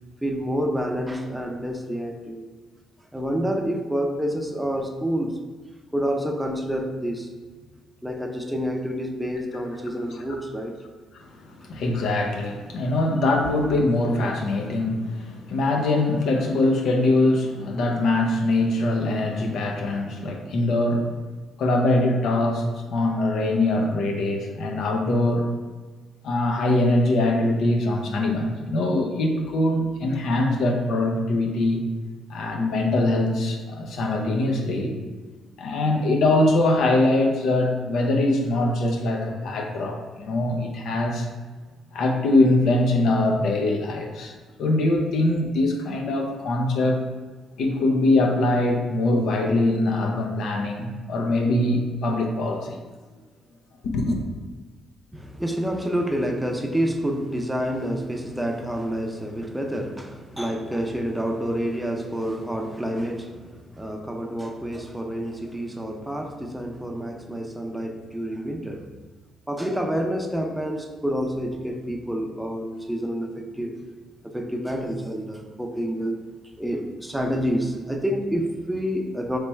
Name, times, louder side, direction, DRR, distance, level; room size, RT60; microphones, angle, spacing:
voice 1, 0.2-2.4 3.1-5.4 5.9-7.3 8.0-10.8 55.1-68.9 69.5-73.8 74.2-76.1 76.6-79.4, equal, 5° right, 2 dB, 0.5 m, -28 dB
voice 2, 11.1-21.1 21.6-22.6 22.9-25.5 26.2-31.8 32.3-34.9 35.6-41.3 41.9-47.0 47.6-52.7 53.8-54.2, left 2 dB, 75° left, 2 dB, 0.6 m, -22 dB
3.3 x 3.0 x 4.4 m, 1.4 s
cardioid pair, 90°, 0 cm